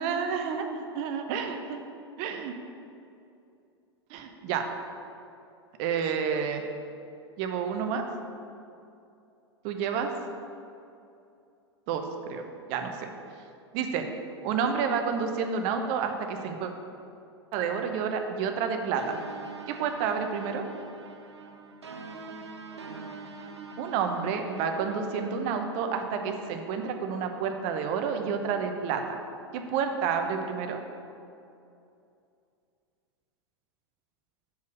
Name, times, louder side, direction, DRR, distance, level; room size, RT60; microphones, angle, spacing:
voice 1, 0.0-1.8 2.2-2.5 4.1-4.6 5.8-6.6 7.4-8.0 9.6-10.1 11.9-12.4 12.7-13.1 13.7-14.1 14.4-16.7 17.5-19.2 19.7-20.6 23.8-29.2 29.5-30.8, right 6 dB, 45° right, 6 dB, 0.8 m, -29 dB
sound 1, 19.0-26.6, right 4 dB, 75° right, 0.7 m, -44 dB
6.5 x 5.5 x 6.3 m, 2.6 s
figure-of-eight pair, 90°, 14 cm